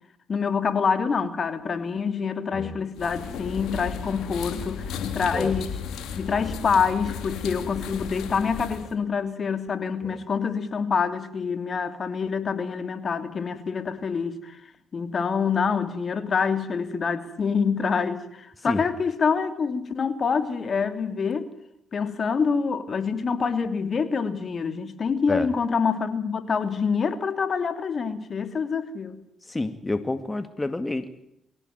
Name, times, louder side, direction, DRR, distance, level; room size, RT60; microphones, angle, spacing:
voice 1, 0.3-5.7 6.1-14.6 14.9-21.5 21.9-29.2, left 5 dB, 50° left, 3.0 m, -26 dB
sound 1, 3.0-8.9, left 7 dB, 75° left, 3.4 m, -34 dB
voice 2, 29.5-31.1, left 2 dB, 20° left, 2.3 m, -28 dB
24.0 x 17.0 x 9.4 m
supercardioid pair, 55°, 0 cm